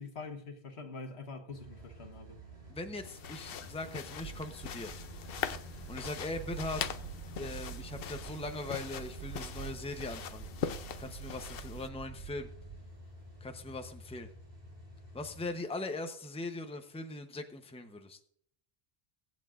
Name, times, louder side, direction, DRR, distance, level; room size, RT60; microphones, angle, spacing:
voice 1, 0.0-2.4, left 4 dB, 85° left, 1.6 m, -44 dB
sound 1, 1.5-15.5, left 1 dB, 40° right, 3.7 m, -51 dB
voice 2, 2.7-4.9 5.9-6.8 7.4-10.5 11.0-12.5 13.4-14.3 15.1-18.2, left 2 dB, 5° left, 0.7 m, -40 dB
sound 2, 3.0-11.9, left 8 dB, 65° left, 0.8 m, -42 dB
sound 3, 4.2-12.9, right 13 dB, 90° right, 0.9 m, -47 dB
22.5 x 8.3 x 2.5 m
omnidirectional pair, 1.1 m